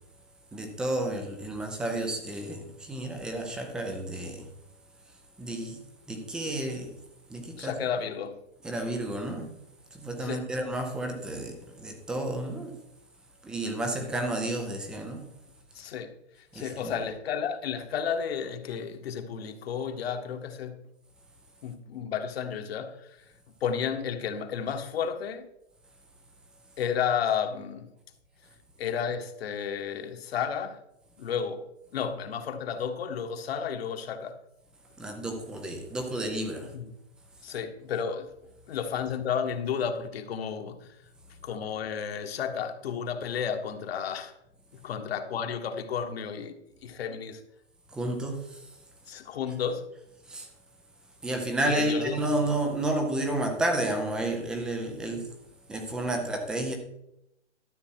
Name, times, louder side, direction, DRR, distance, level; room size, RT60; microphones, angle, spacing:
voice 1, 0.5-4.5 5.4-5.8 6.1-6.9 7.3-7.7 8.6-9.5 9.9-12.7 13.4-15.3 16.5-16.9 35.0-36.7 47.9-48.7 50.3-50.5 51.2-55.3 55.7-56.7, right 1 dB, ahead, 0.4 m, -31 dB
voice 2, 7.6-8.4 10.2-10.5 15.7-20.8 21.6-23.2 23.6-25.5 26.8-27.9 28.8-30.8 31.2-34.4 36.7-37.0 37.4-38.3 38.7-41.0 41.4-44.3 44.8-47.4 49.1-49.9 51.7-52.2, left 7 dB, 60° left, 1.4 m, -32 dB
12.5 x 6.9 x 4.5 m
hypercardioid pair, 150°, 35 cm